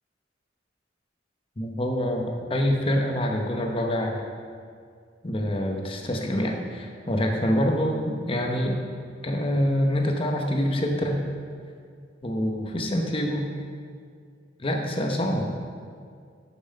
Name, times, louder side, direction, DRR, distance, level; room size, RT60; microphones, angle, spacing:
voice 1, 1.6-4.2 5.2-8.8 9.2-11.2 12.2-13.5 14.6-15.5, equal, 30° left, 2 dB, 0.8 m, -26 dB
6.8 x 6.0 x 5.4 m, 2.2 s
head